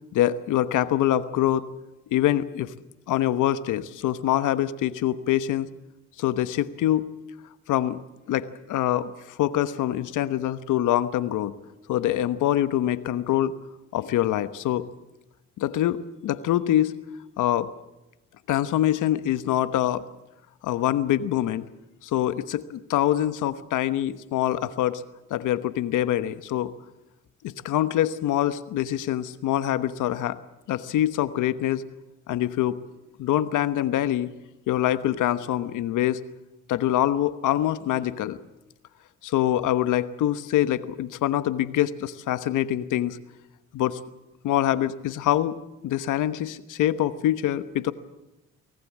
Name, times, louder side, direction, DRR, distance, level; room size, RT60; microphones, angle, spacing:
voice 1, 0.1-1.6 2.1-2.7 3.1-5.7 6.2-7.1 7.7-8.0 8.3-11.6 11.9-13.5 13.9-14.8 15.6-17.0 17.4-17.7 18.5-20.0 20.6-21.6 22.0-25.0 25.3-26.7 27.4-30.4 30.7-31.8 32.3-32.8 33.2-34.3 34.7-36.2 36.7-38.4 39.2-43.2 43.7-44.0 44.4-47.9, left 12 dB, 85° left, 13 dB, 1.1 m, -24 dB
24.0 x 18.0 x 7.4 m, 0.97 s
cardioid pair, 90°, 30 cm